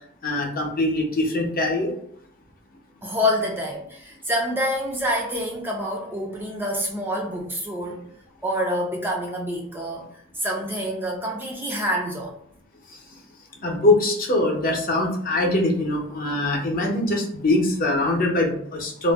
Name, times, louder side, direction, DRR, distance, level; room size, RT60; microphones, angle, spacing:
voice 1, 0.2-1.9 12.9-13.0 13.6-19.1, left 2 dB, 45° left, -1 dB, 0.7 m, -23 dB
voice 2, 3.0-8.0 8.4-12.3, equal, 10° right, -1 dB, 0.3 m, -27 dB
2.4 x 2.0 x 3.4 m, 0.67 s
head